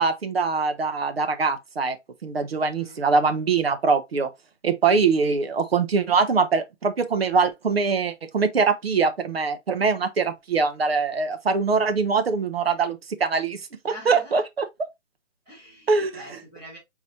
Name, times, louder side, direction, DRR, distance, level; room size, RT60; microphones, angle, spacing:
voice 1, 0.0-2.0 2.2-4.3 4.6-14.9 15.9-16.1, right 4 dB, 50° right, 0.8 m, -23 dB
voice 2, 2.3-3.0 13.8-14.3 15.5-16.8, equal, 10° right, 1.8 m, -45 dB
4.1 x 4.0 x 2.7 m
hypercardioid pair, 180°, 38 cm